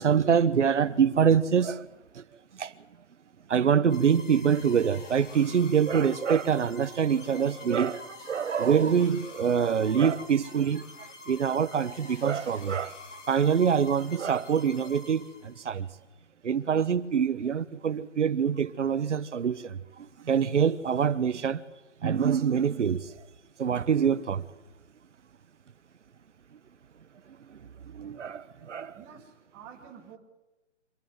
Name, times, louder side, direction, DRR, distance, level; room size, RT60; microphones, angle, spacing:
voice 1, 0.0-1.9 2.1-2.2 2.5-2.7 3.5-13.0 13.3-15.9 16.4-21.6 22.0-23.3 23.6-24.5 27.3-29.0, right 7 dB, 75° right, 1.3 m, -25 dB
sound 1, 3.9-15.7, left 3 dB, 85° left, 5.3 m, -47 dB
voice 2, 28.9-30.2, right 7 dB, 5° right, 1.2 m, -49 dB
25.0 x 13.0 x 9.4 m
hypercardioid pair, 180°, 36 cm